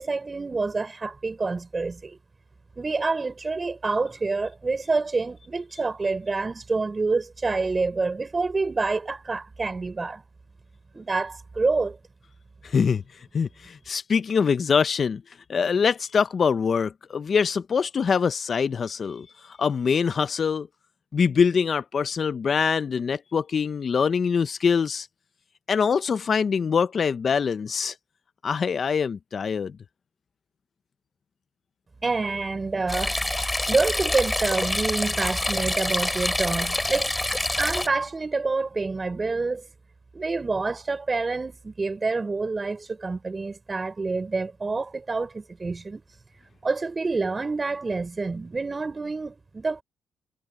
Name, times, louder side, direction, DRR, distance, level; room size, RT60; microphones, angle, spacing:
voice 1, 0.0-2.2 2.8-10.2 10.9-12.0 32.0-33.3 33.7-37.2 37.6-39.6 40.1-46.0 46.6-49.8, right 3 dB, 25° right, 6.0 m, -27 dB
voice 2, 12.6-13.0 13.3-15.2 15.5-20.7 21.1-25.1 25.7-27.9 28.4-29.7, left 6 dB, 45° left, 0.6 m, -24 dB
sound 1, 32.9-37.9, left 1 dB, 10° left, 3.7 m, -26 dB
cardioid pair, 90°, 0 cm